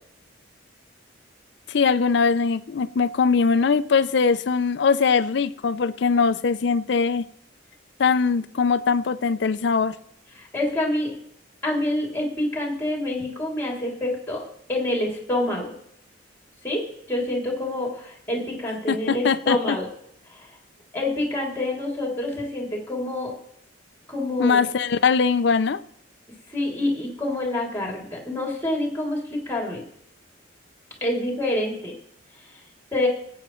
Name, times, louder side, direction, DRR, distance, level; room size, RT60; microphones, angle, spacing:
voice 1, 1.7-7.2 8.0-9.9 18.9-19.8 24.4-25.8, left 5 dB, 60° left, 14 dB, 0.5 m, -21 dB
voice 2, 10.4-11.1 11.6-14.4 14.7-15.7 16.6-19.9 20.3-20.5 20.9-23.3 24.1-24.6 26.5-29.8 31.0-31.9 32.9-33.1, left 1 dB, 10° left, -1 dB, 2.9 m, -27 dB
19.5 x 8.8 x 3.1 m, 0.72 s
head